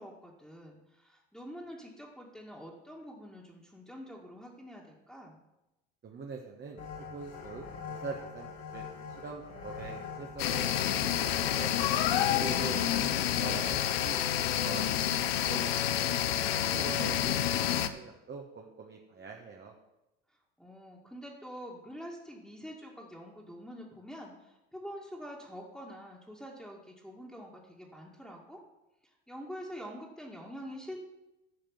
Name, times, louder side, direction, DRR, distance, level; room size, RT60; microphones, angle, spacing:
voice 1, 0.0-5.4 20.6-28.6 29.0-31.0, equal, ahead, -4 dB, 2.1 m, -46 dB
voice 2, 6.0-11.7 12.3-14.9 15.2-16.2 16.6-19.7, right 4 dB, 35° right, 0 dB, 1.5 m, -44 dB
sound 1, 6.8-14.2, left 5 dB, 55° left, 2.3 m, -43 dB
sound 2, 10.4-17.9, left 10 dB, 90° left, 0.7 m, -29 dB
11.5 x 5.1 x 7.4 m, 0.95 s
hypercardioid pair, 75°, 29 cm